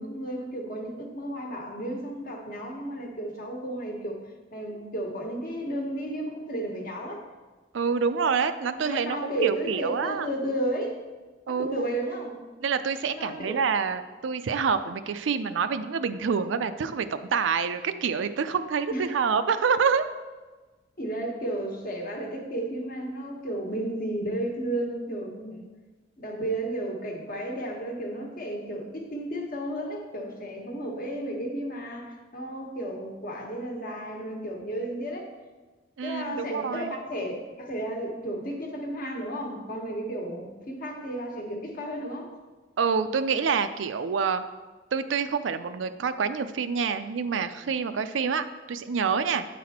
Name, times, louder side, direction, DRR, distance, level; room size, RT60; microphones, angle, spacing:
voice 1, 0.0-4.2 4.5-7.3 8.7-11.0 11.5-12.4 13.1-13.6 18.9-19.1 21.0-25.7 26.2-35.3 36.0-42.3, right 1 dB, 50° left, 1 dB, 1.2 m, -33 dB
voice 2, 7.7-10.3 11.5-12.0 12.6-20.1 36.0-36.9 42.8-44.4 44.9-49.5, right 6 dB, 85° right, 11 dB, 0.4 m, -27 dB
9.3 x 4.2 x 4.2 m, 1.3 s
head